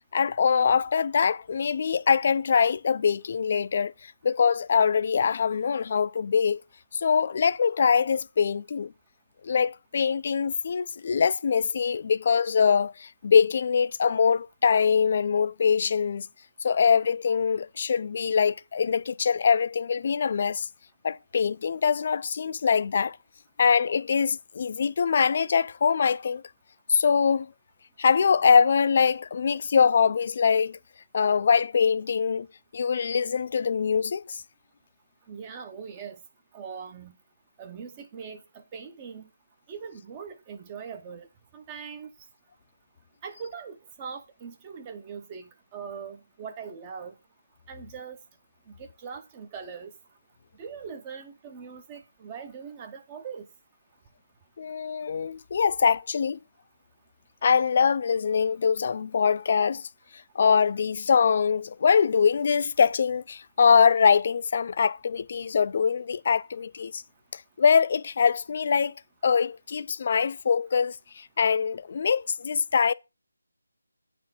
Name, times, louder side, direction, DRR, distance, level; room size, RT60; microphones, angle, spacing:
voice 1, 0.1-3.9 4.2-6.6 6.9-8.9 9.4-16.3 16.6-20.7 21.0-23.2 23.6-26.4 26.9-27.5 28.0-30.8 31.1-32.5 32.7-34.4 54.6-56.4 57.4-59.8 60.4-67.0 67.3-68.9 69.2-72.9, left 6 dB, 35° left, 0.4 m, -23 dB
voice 2, 35.3-36.2 36.5-37.1 37.6-39.3 39.7-41.3 41.5-42.1 43.2-47.1 47.7-48.2 48.8-49.9 50.6-53.5, right 6 dB, 15° right, 0.7 m, -41 dB
8.6 x 4.3 x 5.6 m
figure-of-eight pair, 170°, 0 cm